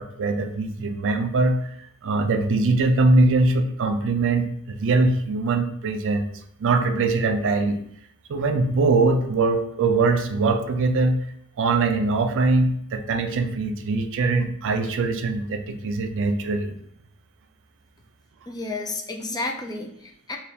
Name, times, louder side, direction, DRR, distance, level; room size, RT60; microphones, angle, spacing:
voice 1, 0.0-1.5 2.0-7.8 8.3-11.2 11.6-16.8, right 3 dB, 60° right, 6 dB, 0.4 m, -22 dB
voice 2, 18.5-20.4, left 2 dB, 15° left, 2 dB, 0.4 m, -31 dB
3.3 x 2.4 x 4.0 m, 0.70 s
head